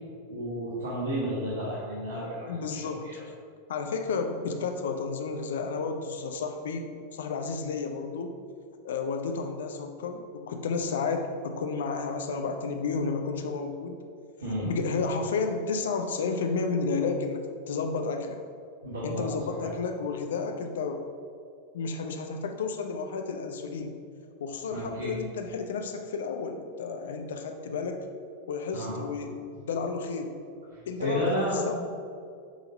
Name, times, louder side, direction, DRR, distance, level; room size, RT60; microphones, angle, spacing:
voice 1, 0.3-3.2 14.4-14.7 18.8-19.3 19.6-19.7 24.7-25.1 28.7-29.0 30.7-31.7, equal, 65° right, -8 dB, 1.5 m, -32 dB
voice 2, 2.5-3.2 3.7-8.4 8.8-14.0 14.6-18.4 19.0-21.1 21.7-24.0 24.4-28.1 28.5-30.3 30.9-31.3 31.7-31.8, left 4 dB, 60° left, 5 dB, 0.6 m, -32 dB
7.2 x 3.9 x 5.0 m, 2.3 s
figure-of-eight pair, 90°, 0 cm